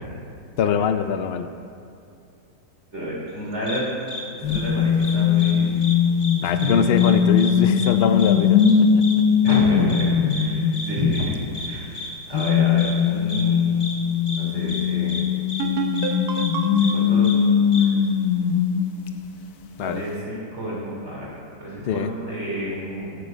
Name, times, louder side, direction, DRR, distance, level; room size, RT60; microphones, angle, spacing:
voice 1, 0.6-1.5 6.4-9.0 19.8-20.0 21.9-22.1, left 7 dB, 85° left, 9 dB, 0.5 m, -23 dB
voice 2, 2.9-3.9 4.3-5.8 6.4-6.8 9.4-10.1 10.4-11.3 11.6-12.0 12.3-13.7 14.4-15.2 16.7-17.3 17.7-17.9 19.8-23.2, equal, 45° right, -6 dB, 3.5 m, -30 dB
sound 1, 3.7-3.8 4.1-4.2 4.5-4.6 5.0-5.5 5.8-5.9 6.2-6.7 7.0-7.1 7.4-7.5 7.8-7.9 8.2-8.3 8.6-8.7 9.0-9.1 9.5-9.6 9.9-10.0 10.3-10.4 10.7-10.9 11.1-11.3 11.5-11.7 11.9-12.1 12.4-12.5 12.8-12.9 13.3-13.4 13.8-13.9 14.3-14.4 14.7-14.8 15.1-15.2 15.5-15.6 16.0-16.1 16.4-16.5 16.8-16.9 17.2-17.4 17.7-17.8, left 2 dB, 40° left, 1.8 m, -32 dB
sound 2, 4.4-11.6 12.3-19.5, left 7 dB, 70° left, 1.2 m, -20 dB
sound 3, 15.6-19.2, right 5 dB, 75° right, 1.4 m, -31 dB
15.0 x 8.7 x 5.2 m, 2.6 s
omnidirectional pair, 1.7 m